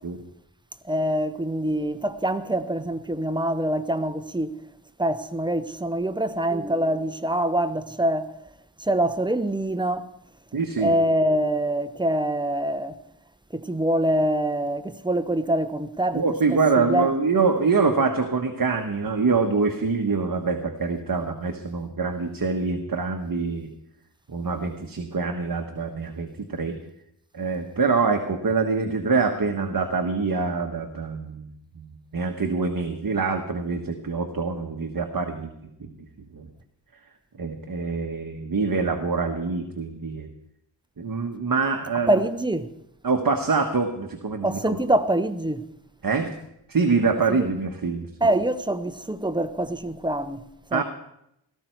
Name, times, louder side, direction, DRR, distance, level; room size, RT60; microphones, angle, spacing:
voice 1, 0.8-4.6 5.0-8.3 8.8-10.0 10.8-13.0 13.5-16.2 16.8-17.1 42.1-42.7 44.4-45.6 47.3-47.5 48.2-50.8, right 1 dB, 10° right, 0.9 m, -25 dB
voice 2, 10.5-10.9 16.1-23.7 24.3-26.8 27.3-31.5 31.8-31.9 32.1-35.5 35.8-35.9 36.3-36.4 37.4-40.3 41.0-42.2 43.0-44.8 46.0-46.3 46.7-48.1 50.7-50.8, right 4 dB, 50° right, 1.3 m, -25 dB
17.5 x 14.0 x 4.6 m
wide cardioid pair, 70°, 45 cm